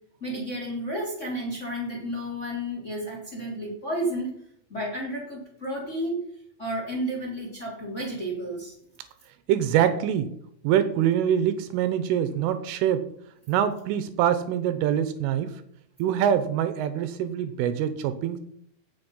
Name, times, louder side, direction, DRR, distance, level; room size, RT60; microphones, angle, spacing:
voice 1, 0.2-4.3 4.7-8.7, right 1 dB, 20° left, -2 dB, 2.8 m, -32 dB
voice 2, 9.5-10.3 10.6-13.1 13.5-15.6 16.0-18.4, right 9 dB, 80° right, 11 dB, 3.3 m, -24 dB
16.5 x 7.4 x 5.5 m, 0.70 s
omnidirectional pair, 5.8 m